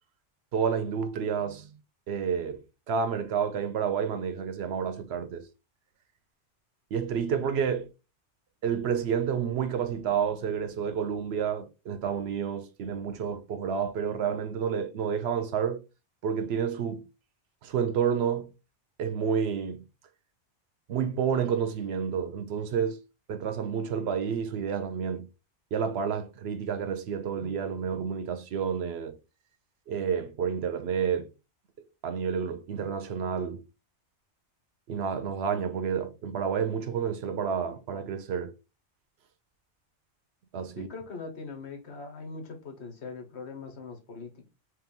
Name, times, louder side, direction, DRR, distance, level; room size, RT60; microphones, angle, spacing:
voice 1, 0.5-1.7 2.1-5.5 6.9-7.9 8.6-15.8 16.2-17.1 17.6-18.5 19.0-19.8 20.9-23.0 23.3-25.3 25.7-29.2 29.9-31.3 32.0-33.7 34.9-38.5 40.5-40.9, right 7 dB, 70° right, 0.8 m, -30 dB
voice 2, 40.7-44.5, left 4 dB, 70° left, 1.2 m, -41 dB
3.1 x 3.0 x 3.5 m
omnidirectional pair, 1.2 m